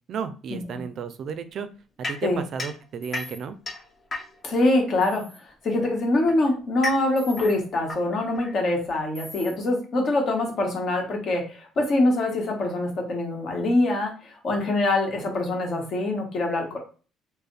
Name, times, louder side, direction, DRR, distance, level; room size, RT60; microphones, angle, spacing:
voice 1, 0.1-1.7 2.0-3.6, right 6 dB, 55° right, 11 dB, 0.4 m, -33 dB
sound 1, 2.0-4.6 5.7-9.0, left 3 dB, 30° left, 0.9 m, -35 dB
sound 2, 3.0-3.4 5.0-5.4 7.2-7.5 9.1-9.5, left 1 dB, 5° left, 0.8 m, -43 dB
voice 2, 4.4-16.8, left 2 dB, 45° left, 1 dB, 1.2 m, -24 dB
3.2 x 2.1 x 4.0 m, 0.37 s
cardioid pair, 130°, 0 cm